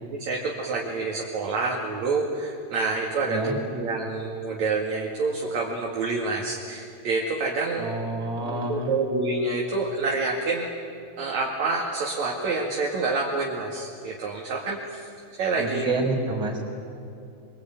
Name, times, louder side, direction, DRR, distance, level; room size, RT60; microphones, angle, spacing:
voice 1, 0.0-7.9 8.4-10.7 11.2-15.1 15.4-16.1, right 3 dB, 45° right, -2 dB, 2.7 m, -28 dB
voice 2, 7.8-9.0 15.6-16.6, right 2 dB, 25° right, 0 dB, 4.6 m, -28 dB
25.5 x 23.5 x 9.2 m, 2.6 s
omnidirectional pair, 5.5 m